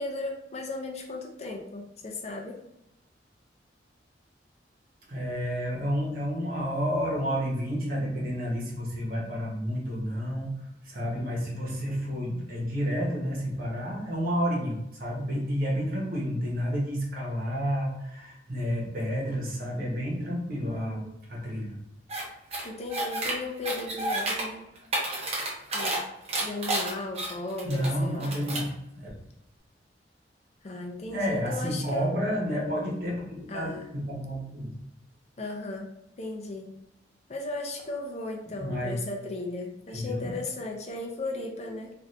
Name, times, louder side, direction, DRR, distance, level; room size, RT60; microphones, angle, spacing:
voice 1, 0.0-2.6 20.6-21.1 22.6-24.6 25.7-26.0 26.4-28.4 30.6-32.1 33.5-33.9 35.4-35.9 36.2-36.7 37.3-41.9, left 2 dB, 40° left, 1 dB, 0.5 m, -36 dB
voice 2, 5.1-21.0 21.3-21.8 27.6-28.7 28.9-29.1 31.0-34.8 38.5-39.0 39.9-40.3, equal, 55° right, -3 dB, 1.1 m, -30 dB
sound 1, 22.1-22.2 22.5-23.3 23.6-24.4 24.8-26.0 26.3-27.9 28.2-28.7, right 2 dB, 35° right, 0.8 m, -30 dB
3.2 x 2.6 x 2.6 m, 0.83 s
head